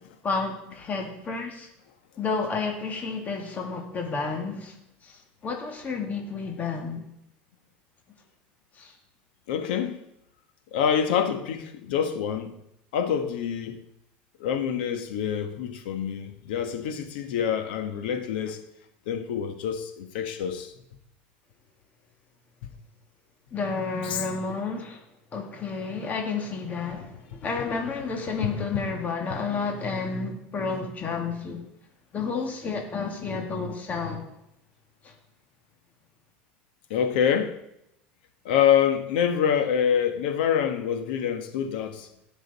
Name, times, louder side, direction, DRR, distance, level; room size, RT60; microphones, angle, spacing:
voice 1, 0.2-1.7 2.2-4.7 5.0-7.0 8.8-8.9 23.5-25.0 25.3-31.6 32.1-34.2 35.0-35.1, left 4 dB, 30° left, 2.1 m, -31 dB
voice 2, 9.5-10.0 10.7-12.6 12.9-13.8 14.4-18.6 19.1-20.8 22.6-22.7 24.0-24.2 27.0-27.1 28.4-28.9 36.9-37.6 38.4-42.1, left 8 dB, 85° left, 1.3 m, -26 dB
17.0 x 6.3 x 4.2 m
supercardioid pair, 110°, 5 cm